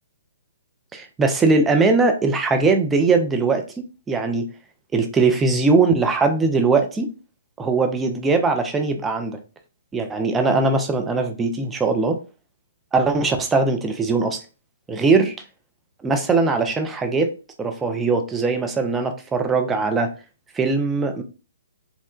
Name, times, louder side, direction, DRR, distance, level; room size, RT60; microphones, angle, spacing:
voice 1, 0.9-4.5 4.9-7.1 7.6-9.4 9.9-12.2 12.9-14.4 14.9-15.4 16.0-20.1 20.5-21.2, right 3 dB, 10° right, 5 dB, 0.4 m, -20 dB
2.8 x 2.1 x 2.3 m, 0.33 s
figure-of-eight pair, 125°, 0 cm